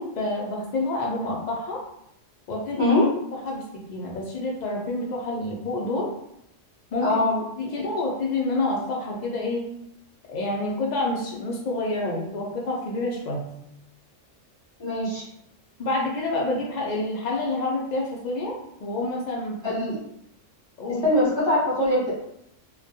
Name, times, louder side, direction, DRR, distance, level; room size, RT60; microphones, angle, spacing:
voice 1, 0.0-1.8 2.5-2.9 3.4-6.1 6.9-7.2 7.6-9.7 10.3-13.5 15.8-19.6 20.8-21.0, left 2 dB, 80° left, -2 dB, 0.4 m, -28 dB
voice 2, 2.8-3.1 7.0-7.4 14.8-15.2 19.6-20.0 21.0-22.2, left 1 dB, 25° left, -9 dB, 0.7 m, -22 dB
2.3 x 2.1 x 2.7 m, 0.77 s
omnidirectional pair, 1.3 m